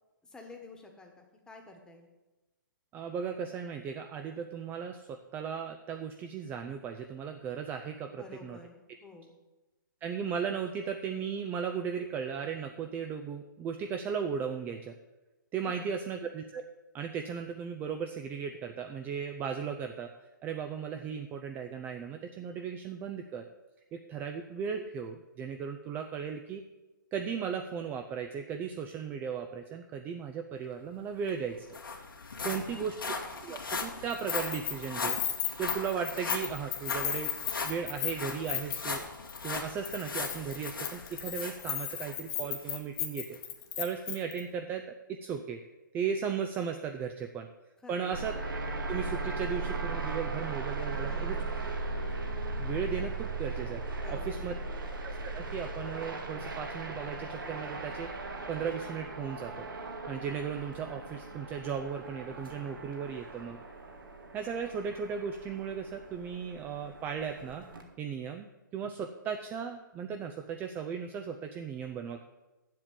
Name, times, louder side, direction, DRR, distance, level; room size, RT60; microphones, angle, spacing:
voice 1, 0.3-2.1 8.1-9.4 15.6-15.9 32.4-32.9 47.8-48.2 50.9-51.7 53.9-54.6, left 3 dB, 5° left, 2 dB, 1.4 m, -50 dB
voice 2, 2.9-8.6 10.0-14.9 15.5-16.6 16.9-20.1 20.4-23.5 23.9-26.6 27.1-31.7 32.4-33.1 33.4-35.2 35.6-37.3 37.6-39.0 39.4-43.4 43.8-44.9 45.2-45.6 45.9-47.5 47.9-48.3 48.9-51.4 52.6-53.8 54.1-54.5 55.0-58.1 58.5-59.7 60.1-63.6 64.3-67.7 68.0-72.2, right 7 dB, 15° right, 6 dB, 0.5 m, -36 dB
sound 1, 30.9-31.0 31.3-42.2 42.6-42.8 43.3-43.4, left 4 dB, 85° left, 2.1 m, -38 dB
Keys jangling, 34.1-39.0 39.3-39.6 39.8-44.4, left 10 dB, 25° left, 1.2 m, -35 dB
sound 2, 48.1-67.8, right 3 dB, 80° right, 2.0 m, -38 dB
7.5 x 7.3 x 8.2 m, 1.1 s
hypercardioid pair, 140°, 11 cm